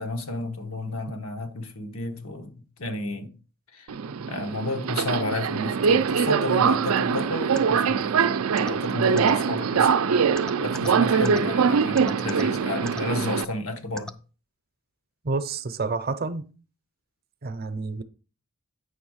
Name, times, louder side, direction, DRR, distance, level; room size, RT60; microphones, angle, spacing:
voice 1, 0.0-3.3 3.7-3.9 4.3-8.2 8.6-9.9 10.6-14.1, left 1 dB, 85° left, 1.2 m, -31 dB
Subway metro underground, 3.9-13.4, right 6 dB, 90° right, 0.4 m, -23 dB
sound 1, 7.5-7.6 8.6-8.7 9.2-9.3 10.4-10.9 11.2-11.4 12.0-12.4 12.9-13.0 14.0-14.1, left 1 dB, 5° left, 0.3 m, -35 dB
voice 2, 15.2-16.5 17.4-18.0, right 3 dB, 45° right, 0.6 m, -29 dB
9.3 x 3.6 x 6.3 m
head